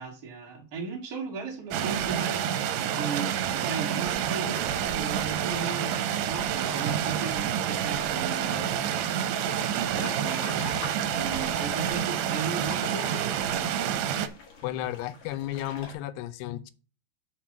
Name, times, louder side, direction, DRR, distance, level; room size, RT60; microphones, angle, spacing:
voice 1, 0.0-9.0 9.6-13.6, right 5 dB, 30° right, 2.0 m, -37 dB
sound 1, 1.7-14.3, right 9 dB, 90° right, 2.8 m, -28 dB
sound 2, 6.3-15.9, left 4 dB, 45° left, 2.2 m, -45 dB
voice 2, 14.6-16.7, left 13 dB, 85° left, 2.7 m, -33 dB
5.9 x 5.8 x 6.3 m
omnidirectional pair, 4.7 m